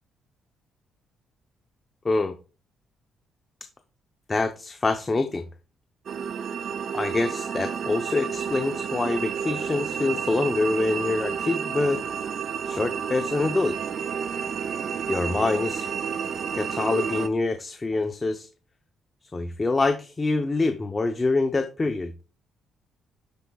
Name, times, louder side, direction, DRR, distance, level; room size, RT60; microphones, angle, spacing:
voice 1, 2.0-2.3 4.3-5.4 6.9-12.0 12.7-13.8 15.0-15.9 16.5-18.5 19.3-22.1, left 3 dB, 25° left, 7 dB, 0.6 m, -25 dB
sound 1, 6.1-17.3, right 7 dB, 60° right, 0.6 m, -30 dB
12.0 x 4.5 x 2.2 m, 0.32 s
cardioid pair, 90°, 0 cm